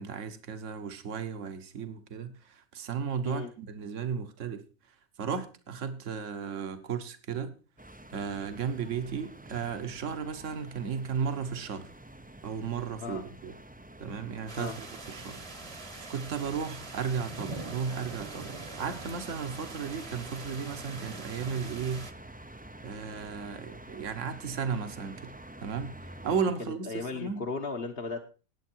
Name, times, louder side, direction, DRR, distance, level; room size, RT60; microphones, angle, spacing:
voice 1, 0.0-4.6 5.2-7.5 8.1-11.9 12.4-13.6 14.0-15.4 15.7-22.1 22.8-25.3 25.6-27.4, right 6 dB, 60° right, 1.5 m, -35 dB
sound 1, 7.8-26.4, right 1 dB, 10° right, 0.5 m, -48 dB
sound 2, 14.5-22.1, right 3 dB, 25° right, 1.2 m, -43 dB
voice 2, 26.6-28.2, left 4 dB, 45° left, 1.4 m, -36 dB
19.0 x 8.0 x 4.5 m
omnidirectional pair, 1.4 m